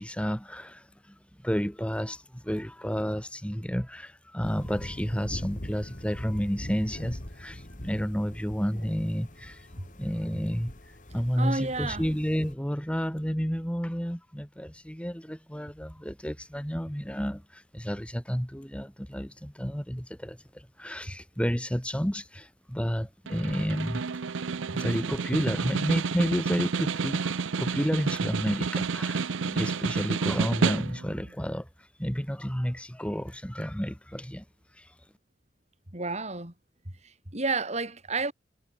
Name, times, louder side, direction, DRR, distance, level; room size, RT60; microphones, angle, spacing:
voice 1, 0.0-9.7 10.0-24.0 24.7-34.4 34.7-34.9, equal, 5° left, 3.2 m, -31 dB
sound 1, 4.4-12.6, left 1 dB, 45° left, 2.4 m, -42 dB
voice 2, 11.4-12.0 35.9-36.5 37.0-38.3, right 3 dB, 35° right, 4.0 m, -31 dB
Snare drum, 23.3-31.2, right 5 dB, 90° right, 0.6 m, -30 dB
head